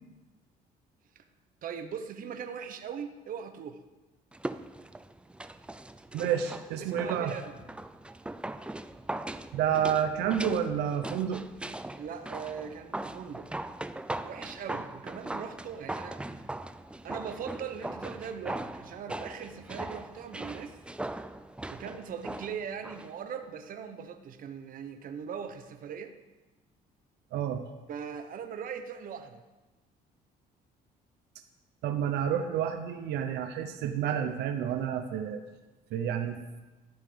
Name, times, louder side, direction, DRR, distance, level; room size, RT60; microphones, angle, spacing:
voice 1, 1.6-3.8 6.8-7.5 12.0-13.5 14.2-16.2 17.0-20.8 21.7-26.2 27.9-29.4, right 7 dB, 55° right, 8 dB, 1.0 m, -40 dB
sound 1, 4.3-23.1 23.4-23.5, right 1 dB, 5° right, 0.4 m, -40 dB
voice 2, 6.1-7.3 9.5-11.4 27.3-27.6 31.8-35.4 35.9-36.4, right 9 dB, 80° right, 7 dB, 0.9 m, -29 dB
14.0 x 5.7 x 6.9 m, 1.1 s
cardioid pair, 110°, 17 cm